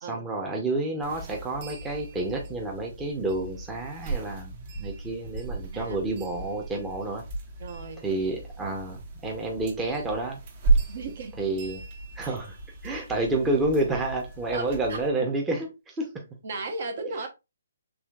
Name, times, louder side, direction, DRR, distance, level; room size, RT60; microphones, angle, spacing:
voice 1, 0.1-7.2 8.0-10.4 11.4-11.8 12.2-12.6 12.8-16.2, right 2 dB, 10° right, 0.8 m, -29 dB
sound 1, 1.0-15.1, right 3 dB, 35° right, 0.9 m, -34 dB
voice 2, 7.6-8.0 10.9-11.4 12.3-12.4 14.5-15.0 16.4-17.3, right 3 dB, 55° right, 1.0 m, -35 dB
4.8 x 3.4 x 2.3 m
hypercardioid pair, 155°, 0 cm